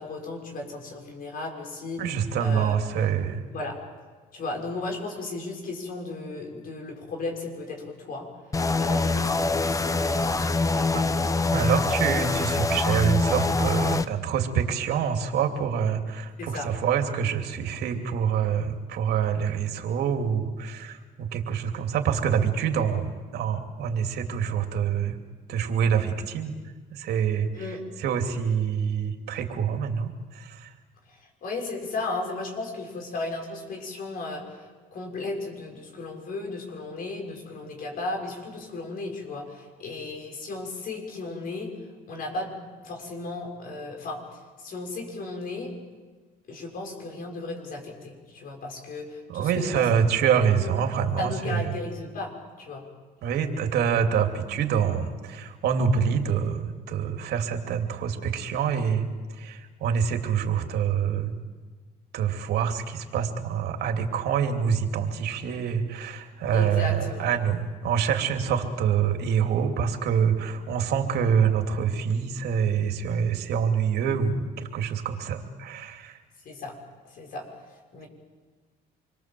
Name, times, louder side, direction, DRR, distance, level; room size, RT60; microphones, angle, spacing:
voice 1, 0.0-3.1 3.5-3.8 4.3-8.3 8.8-11.3 16.4-16.7 27.5-27.8 31.1-41.7 42.1-45.7 46.5-50.0 50.5-50.7 51.2-52.3 52.6-52.8 66.5-67.3 76.4-76.7 77.0-78.1, left 2 dB, 60° left, 2 dB, 6.5 m, -35 dB
voice 2, 2.0-3.4 10.9-11.0 11.5-25.2 25.5-26.5 26.9-30.7 49.3-51.8 53.2-59.0 59.4-61.3 62.1-76.2, right 7 dB, 75° right, 5 dB, 2.8 m, -26 dB
sound 1, 8.5-14.1, left 3 dB, 20° left, 0.9 m, -24 dB
27.5 x 22.5 x 7.7 m, 1.4 s
cardioid pair, 110°, 17 cm